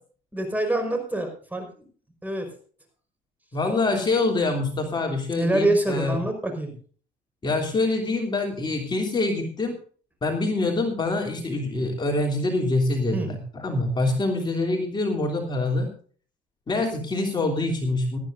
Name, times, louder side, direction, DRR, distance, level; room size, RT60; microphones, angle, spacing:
voice 1, 0.3-1.8 2.2-2.5 5.3-6.7 13.1-13.3, right 1 dB, 10° right, 5 dB, 5.3 m, -26 dB
voice 2, 3.5-6.2 7.4-9.8 10.2-15.9 16.7-18.2, left 2 dB, 25° left, 1 dB, 3.1 m, -25 dB
19.5 x 13.0 x 2.6 m, 0.43 s
cardioid pair, 110°, 17 cm